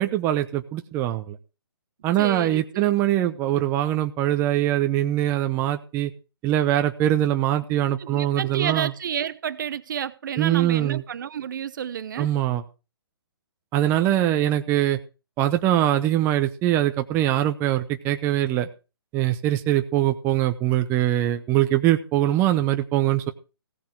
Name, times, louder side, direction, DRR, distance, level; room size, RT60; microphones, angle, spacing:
voice 1, 0.0-1.4 2.0-6.1 6.4-8.9 10.4-11.0 12.2-12.6 13.7-15.0 15.4-18.7 19.1-23.3, right 13 dB, 15° right, 0.8 m, -22 dB
voice 2, 2.2-2.9 8.0-12.3, right 8 dB, 50° right, 0.9 m, -30 dB
16.5 x 5.7 x 7.5 m
hypercardioid pair, 145°, 13 cm